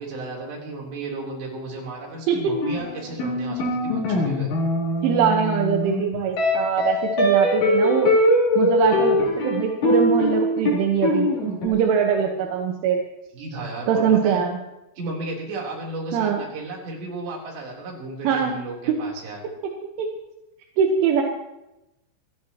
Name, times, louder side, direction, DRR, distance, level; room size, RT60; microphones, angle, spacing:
voice 1, 0.0-4.5 13.3-14.4 15.0-19.4, right 2 dB, 65° right, -2 dB, 5.9 m, -34 dB
voice 2, 2.3-2.6 5.0-8.1 8.6-13.0 13.9-14.5 16.1-16.4 18.3-18.6 18.9-19.0 20.0-20.2 20.8-21.2, right 7 dB, 85° right, 1 dB, 3.9 m, -22 dB
sound 1, 2.5-11.7, left 1 dB, 65° left, 6.1 m, -22 dB
27.5 x 14.0 x 3.0 m, 0.91 s
omnidirectional pair, 5.4 m